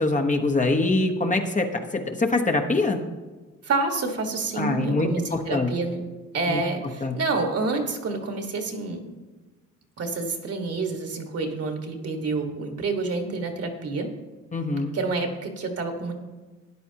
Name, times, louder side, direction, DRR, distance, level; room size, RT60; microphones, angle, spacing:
voice 1, 0.0-3.0 4.6-5.7 6.5-6.6 7.0-7.2 14.5-14.9, left 2 dB, 25° left, 4 dB, 1.0 m, -24 dB
voice 2, 3.6-6.0 6.3-9.0 10.0-14.1 14.9-16.2, right 3 dB, 55° right, 4 dB, 1.6 m, -28 dB
13.5 x 9.8 x 2.9 m, 1.2 s
cardioid pair, 90°, 30 cm